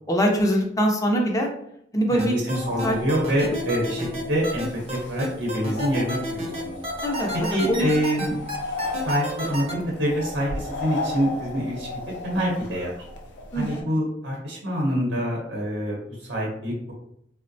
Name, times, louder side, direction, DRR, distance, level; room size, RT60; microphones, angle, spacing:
voice 1, 0.1-1.5 1.9-2.3 2.8-2.9 7.0-7.9 8.2-8.3 8.8-8.9 13.5-13.9, equal, 20° left, 1 dB, 0.5 m, -23 dB
voice 2, 2.1-6.8 7.5-8.4 9.0-11.9 12.2-13.0 13.5-16.9, equal, 70° right, -2 dB, 0.8 m, -26 dB
sound 1, 2.2-9.7, right 1 dB, 35° right, 0.6 m, -31 dB
sound 2, 2.5-13.8, left 2 dB, 70° left, 0.5 m, -36 dB
3.6 x 2.1 x 2.6 m, 0.71 s
head